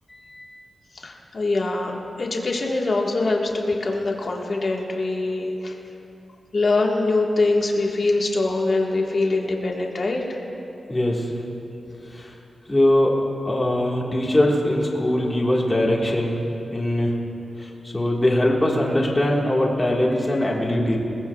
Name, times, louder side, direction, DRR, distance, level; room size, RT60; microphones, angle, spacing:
voice 1, 0.1-0.4 10.9-11.3 12.1-12.3 12.7-13.1 13.4-16.4 16.7-17.1 17.6-21.0, left 1 dB, 15° left, -3 dB, 1.7 m, -21 dB
voice 2, 0.9-1.9 2.2-5.7 6.5-10.2, left 2 dB, 45° left, -1 dB, 1.6 m, -23 dB
21.0 x 20.5 x 2.4 m, 2.9 s
wide cardioid pair, 170°, 0 cm